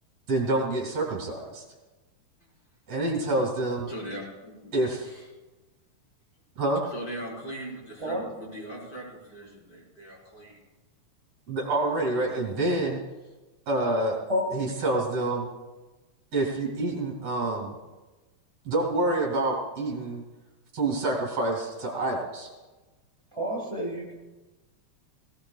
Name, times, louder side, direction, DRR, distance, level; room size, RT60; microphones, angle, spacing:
voice 1, 0.3-1.6 2.9-3.9 4.7-5.1 6.6-6.8 11.5-13.0 13.7-14.2 14.5-15.5 16.3-17.7 18.6-20.2 20.7-22.5, right 2 dB, 55° right, 0 dB, 3.3 m, -27 dB
voice 2, 3.9-4.8 5.0-5.3 6.9-10.6, right 1 dB, 30° left, -5 dB, 5.0 m, -40 dB
voice 3, 23.3-24.1, equal, 25° right, -3 dB, 0.7 m, -29 dB
18.5 x 17.5 x 2.4 m, 1.1 s
omnidirectional pair, 3.6 m